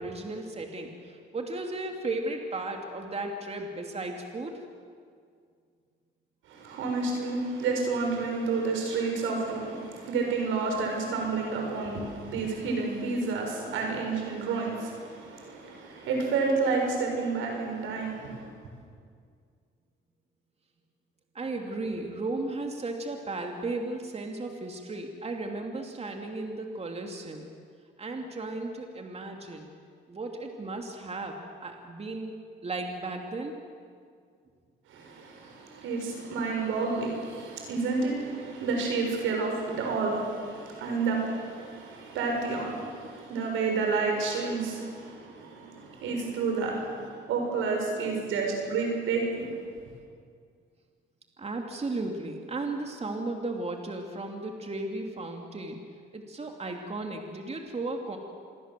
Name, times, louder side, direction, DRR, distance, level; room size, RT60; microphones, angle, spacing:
voice 1, 0.0-4.6 21.3-27.5 28.0-29.7 30.1-32.3 32.6-33.5 51.4-55.8 56.1-58.2, right 2 dB, 30° right, 3 dB, 3.0 m, -35 dB
voice 2, 6.5-18.5 34.9-49.5, right 4 dB, 90° right, 1 dB, 6.7 m, -30 dB
27.0 x 22.0 x 7.7 m, 2.1 s
cardioid pair, 90°, 20 cm